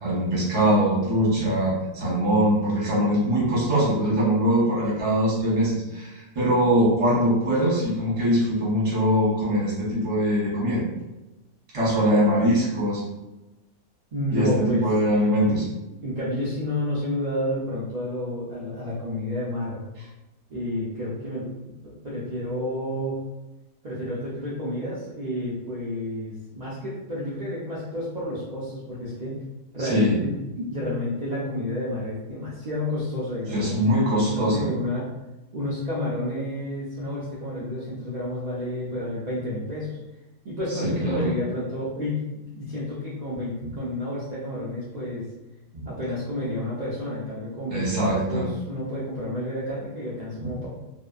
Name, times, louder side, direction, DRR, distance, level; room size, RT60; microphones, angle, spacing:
voice 1, 0.0-10.8 11.7-13.0 14.3-15.6 29.8-30.1 33.5-34.7 40.8-41.3 43.6-43.7 45.7-45.9 47.7-48.5 50.4-50.5, equal, 30° right, -6 dB, 0.7 m, -22 dB
voice 2, 14.1-14.8 15.4-15.6 16.0-19.8 20.5-21.7 22.0-23.2 23.8-29.4 29.7-30.1 30.6-33.7 34.3-35.1 35.5-40.0 40.4-45.3 45.8-48.0 48.3-50.7, left 1 dB, 90° right, -9 dB, 0.3 m, -30 dB
2.7 x 2.1 x 2.3 m, 1.0 s
omnidirectional pair, 1.5 m